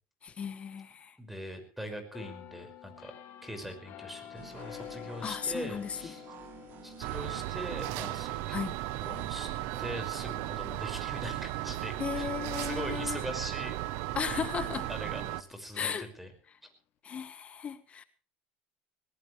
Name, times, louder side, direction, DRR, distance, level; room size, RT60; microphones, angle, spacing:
voice 1, 0.2-1.2 5.2-6.1 8.5-8.8 12.0-13.2 14.1-14.9 15.7-16.1 17.0-18.0, left 7 dB, 30° left, 1.3 m, -35 dB
voice 2, 1.2-3.1 3.4-6.2 6.8-8.6 9.0-9.5 9.8-12.3 12.5-13.7 14.2-14.5 14.9-16.3, equal, 5° right, 5.7 m, -41 dB
sound 1, 2.1-13.7 14.1-14.3, left 11 dB, 50° left, 4.1 m, -50 dB
sound 2, 4.3-13.1, right 11 dB, 50° right, 1.9 m, -51 dB
sound 3, 7.0-15.4, right 16 dB, 65° right, 1.0 m, -35 dB
20.5 x 19.0 x 3.3 m
supercardioid pair, 115°, 4 cm